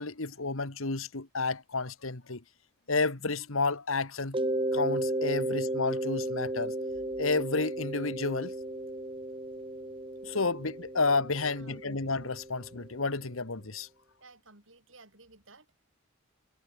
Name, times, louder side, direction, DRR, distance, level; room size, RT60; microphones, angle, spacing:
voice 1, 0.0-2.4 2.9-4.4 4.7-6.7 7.2-8.5 10.2-13.9, left 3 dB, 80° left, 1.9 m, -31 dB
Mallet percussion, 4.3-12.9, right 1 dB, 25° right, 1.5 m, -34 dB
voice 2, 11.5-11.8 14.2-15.8, right 3 dB, 70° right, 7.3 m, -56 dB
head